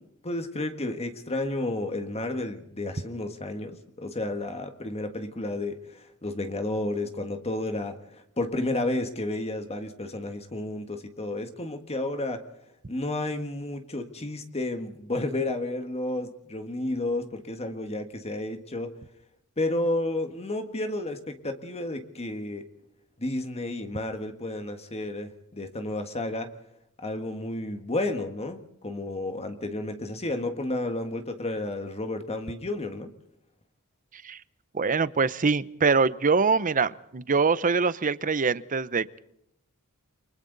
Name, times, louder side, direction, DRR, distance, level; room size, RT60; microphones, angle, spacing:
voice 1, 0.0-12.5 12.9-19.0 19.6-22.7 23.2-26.5 27.0-33.1, left 2 dB, 30° left, 7 dB, 1.6 m, -31 dB
voice 2, 34.7-39.2, right 4 dB, 35° right, 17 dB, 0.7 m, -24 dB
29.5 x 24.0 x 4.0 m, 0.77 s
head